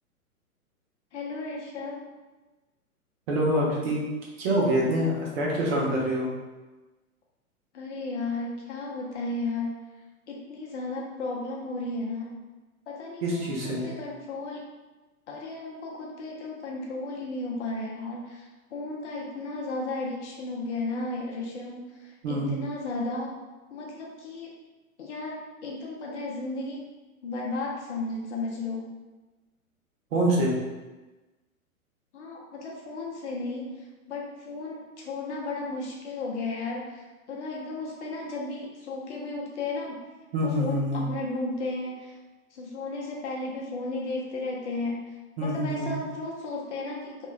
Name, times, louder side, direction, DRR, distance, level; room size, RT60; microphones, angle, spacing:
voice 1, 1.1-2.1 7.7-9.7 10.3-12.3 12.9-14.6 15.3-23.3 23.7-24.5 25.0-25.3 25.6-26.8 27.2-29.0 32.1-40.0 40.6-42.2 42.5-45.1 45.4-47.3, left 2 dB, 50° left, -2 dB, 0.7 m, -34 dB
voice 2, 3.3-4.0 4.4-6.3 13.2-13.8 22.2-22.5 30.1-30.5 40.3-41.0 45.4-45.9, right 1 dB, 45° right, -4 dB, 0.8 m, -25 dB
2.8 x 2.3 x 2.3 m, 1.2 s
figure-of-eight pair, 110°, 44 cm